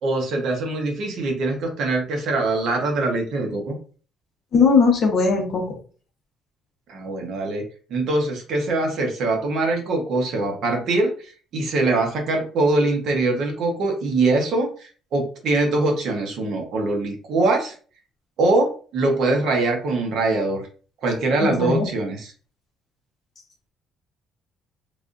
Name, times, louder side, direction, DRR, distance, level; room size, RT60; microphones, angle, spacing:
voice 1, 0.0-3.7 6.9-7.6 7.9-17.7 18.4-20.6 21.0-22.3, right 2 dB, 55° right, 2 dB, 0.8 m, -23 dB
voice 2, 4.5-5.8 21.4-21.9, left 5 dB, 40° left, 1 dB, 0.9 m, -19 dB
3.3 x 2.5 x 2.5 m, 0.40 s
cardioid pair, 170°, 0 cm